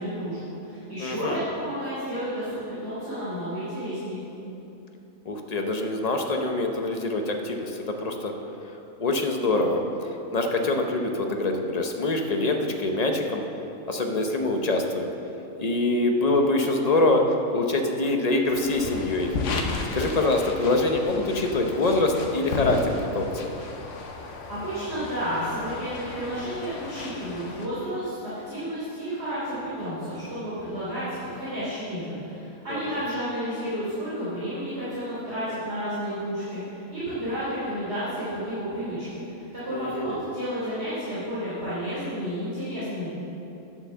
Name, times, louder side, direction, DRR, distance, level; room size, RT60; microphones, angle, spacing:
voice 1, 0.0-4.2 24.5-43.1, equal, 50° right, -12 dB, 3.2 m, -31 dB
voice 2, 1.0-1.4 5.3-8.3 9.0-9.8 10.3-13.4 13.9-15.1 15.6-17.2 17.5-19.3 19.9-23.3 32.7-32.8 39.7-40.2, left 2 dB, 35° left, 3 dB, 0.7 m, -24 dB
sound 1, 18.4-27.7, left 3 dB, 60° left, 1.2 m, -34 dB
9.4 x 7.1 x 6.8 m, 3.0 s
omnidirectional pair, 1.5 m